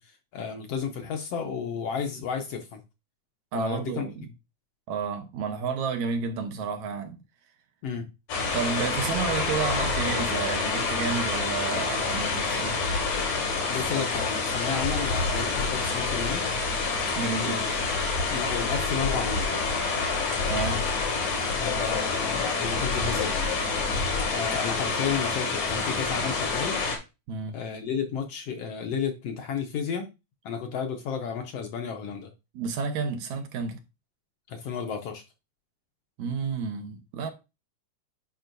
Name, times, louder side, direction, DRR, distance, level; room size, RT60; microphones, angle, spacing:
voice 1, 0.0-2.8 3.5-4.1 7.8-8.1 9.0-9.1 13.7-16.4 17.4-17.7 18.3-19.5 21.6-23.4 24.3-26.8 27.5-30.1 30.4-32.3 34.5-35.2, left 6 dB, 65° left, 1.7 m, -32 dB
voice 2, 3.5-4.3 4.9-7.2 8.5-12.8 17.2-17.6 20.5-20.8 27.3-27.6 32.5-33.8 36.2-37.3, right 5 dB, 75° right, 2.3 m, -31 dB
sound 1, 8.3-27.0, left 4 dB, 85° left, 3.7 m, -27 dB
10.0 x 5.5 x 2.6 m
omnidirectional pair, 3.5 m